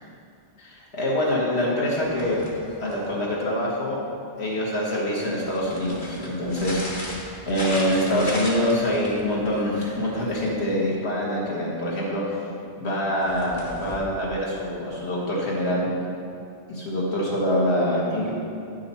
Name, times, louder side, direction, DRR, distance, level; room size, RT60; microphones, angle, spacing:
voice 1, 0.6-2.4 2.8-4.0 4.4-7.2 7.5-12.3 12.8-15.9 16.7-18.3, equal, 65° left, -5 dB, 2.0 m, -25 dB
sound 1, 2.0-3.3 5.3-10.9 13.2-14.0, left 1 dB, 45° left, 1.4 m, -37 dB
9.8 x 6.3 x 4.1 m, 2.5 s
omnidirectional pair, 1.2 m